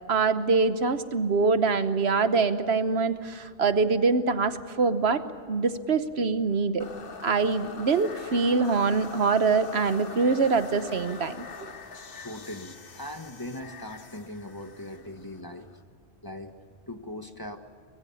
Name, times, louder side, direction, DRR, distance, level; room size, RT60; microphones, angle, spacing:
voice 1, 0.1-6.9 7.2-11.7, right 4 dB, 70° right, 11 dB, 1.3 m, -24 dB
sound 1, 6.8-15.8, left 5 dB, 55° left, 1.3 m, -43 dB
voice 2, 12.0-15.7 16.2-16.5 16.9-17.6, left 1 dB, 20° left, 6 dB, 1.4 m, -40 dB
24.5 x 22.0 x 7.1 m, 2.2 s
omnidirectional pair, 1.2 m